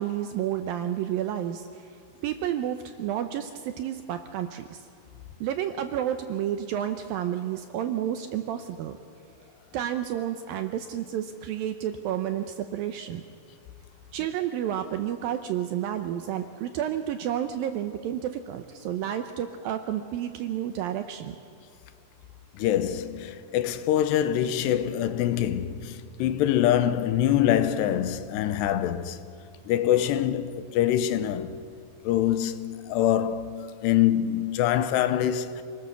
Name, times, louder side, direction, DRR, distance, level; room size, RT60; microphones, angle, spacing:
voice 1, 0.0-1.9 2.2-4.8 5.4-9.0 9.7-13.2 14.1-21.4, right 10 dB, 80° right, 2.2 m, -30 dB
voice 2, 22.5-29.2 29.7-31.6 32.0-35.6, left 11 dB, 80° left, 3.0 m, -25 dB
27.5 x 19.0 x 6.9 m
omnidirectional pair, 4.8 m